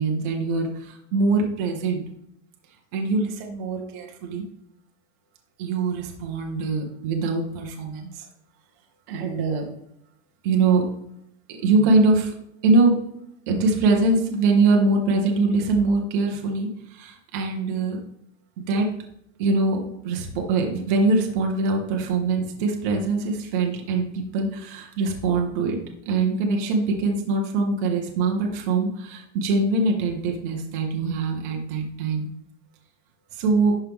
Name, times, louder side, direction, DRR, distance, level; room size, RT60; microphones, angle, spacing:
voice 1, 0.0-2.0 2.9-4.4 5.6-8.3 9.1-9.7 10.4-10.9 11.5-12.3 12.6-13.0 13.5-18.0 18.6-18.9 19.4-25.8 26.0-32.3 33.3-33.8, right 3 dB, 15° right, 2 dB, 0.4 m, -23 dB
11.0 x 4.4 x 3.5 m, 0.76 s
supercardioid pair, 170°, 38 cm